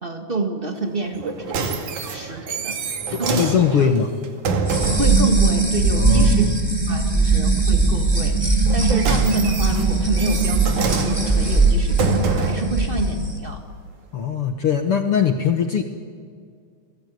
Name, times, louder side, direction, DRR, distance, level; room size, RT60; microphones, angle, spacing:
voice 1, 0.0-1.8 2.1-2.8 3.2-3.9 5.0-6.5 6.9-13.6, right 2 dB, 30° right, 5 dB, 0.9 m, -28 dB
sound 1, 1.1-5.2 8.6-12.8 13.5-13.6, right 4 dB, 60° right, 3.4 m, -26 dB
voice 2, 3.1-4.1 5.9-6.5 14.1-15.8, left 7 dB, 60° left, 6 dB, 1.5 m, -21 dB
sound 2, 4.7-13.3, right 3 dB, 10° right, 2.8 m, -19 dB
29.5 x 20.0 x 9.4 m, 2.1 s
omnidirectional pair, 4.1 m